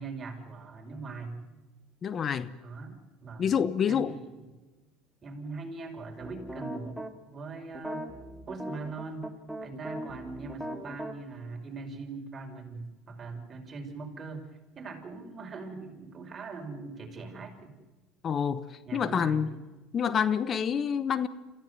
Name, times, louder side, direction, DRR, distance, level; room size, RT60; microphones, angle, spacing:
voice 1, 0.0-1.4 2.6-3.5 3.9-4.5 5.2-6.9 7.3-8.1 8.5-9.3 9.6-14.5 14.8-17.7 18.8-19.5, right 4 dB, 30° right, 2 dB, 5.3 m, -41 dB
voice 2, 2.0-2.5 3.4-4.1 18.2-19.5 19.9-21.3, left 7 dB, 40° left, 14 dB, 0.9 m, -27 dB
sound 1, 6.2-7.1 7.7-11.1, equal, 5° right, 2.4 m, -39 dB
26.5 x 15.0 x 9.5 m, 1.2 s
supercardioid pair, 90°, 0 cm